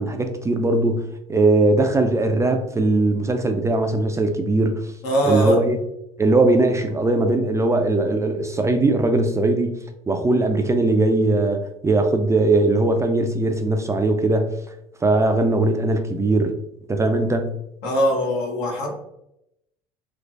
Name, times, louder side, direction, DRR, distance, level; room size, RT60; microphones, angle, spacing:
voice 1, 0.0-4.9 5.2-5.8 6.2-9.7 10.1-14.6 15.0-16.6 16.9-17.5, right 2 dB, 15° right, 5 dB, 0.4 m, -20 dB
voice 2, 5.0-5.6 17.8-19.0, equal, 65° left, 0 dB, 1.1 m, -21 dB
3.3 x 3.0 x 2.5 m, 0.82 s
hypercardioid pair, 75°, 18 cm